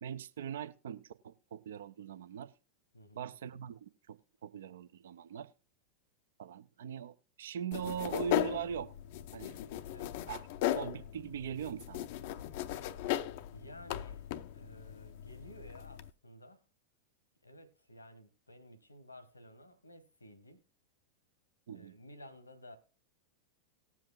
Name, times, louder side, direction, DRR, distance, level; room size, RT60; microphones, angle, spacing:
voice 1, 0.0-2.5 3.1-5.5 6.4-8.9 9.3-9.6 10.3-10.5 10.7-12.1 21.7-21.9, right 8 dB, 60° right, 0.5 m, -41 dB
voice 2, 2.9-3.2 9.9-10.1 13.5-14.3 14.5-16.6 17.4-20.6 21.7-22.8, equal, 80° left, 1.1 m, -54 dB
sound 1, 7.7-16.1, left 13 dB, 50° left, 0.5 m, -37 dB
19.0 x 7.5 x 2.3 m
figure-of-eight pair, 90°, 0 cm